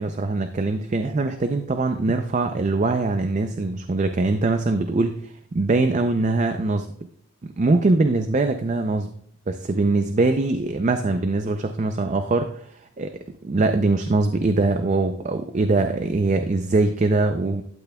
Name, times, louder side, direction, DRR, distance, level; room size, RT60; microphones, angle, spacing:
voice 1, 0.0-6.9 7.4-9.1 9.5-13.1 13.4-17.6, right 3 dB, 35° right, 7 dB, 0.4 m, -22 dB
12.0 x 8.1 x 2.2 m, 0.64 s
head